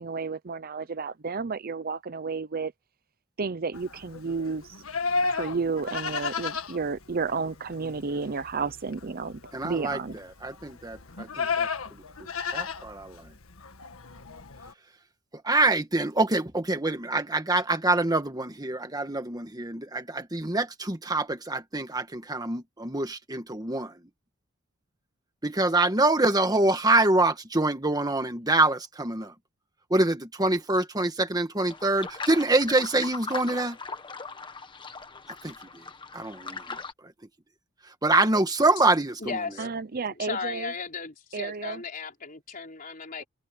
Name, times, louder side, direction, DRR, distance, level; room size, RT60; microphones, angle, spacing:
voice 1, 0.0-2.7 3.4-4.8 5.3-10.2 39.6-40.7 41.3-41.8, right 4 dB, 45° right, 0.7 m, -32 dB
Livestock farm animals working animals, 3.7-14.7, left 4 dB, 85° left, 1.7 m, -34 dB
voice 2, 9.5-10.0 10.4-11.7 12.5-13.3 15.4-24.0 25.4-29.3 29.9-33.8 35.4-35.8 36.1-36.8 38.0-39.4, right 2 dB, 20° right, 1.6 m, -25 dB
sound 1, 31.7-36.9, left 4 dB, 25° left, 1.4 m, -39 dB
voice 3, 39.2-39.7 40.2-43.3, left 4 dB, 40° left, 3.9 m, -35 dB
head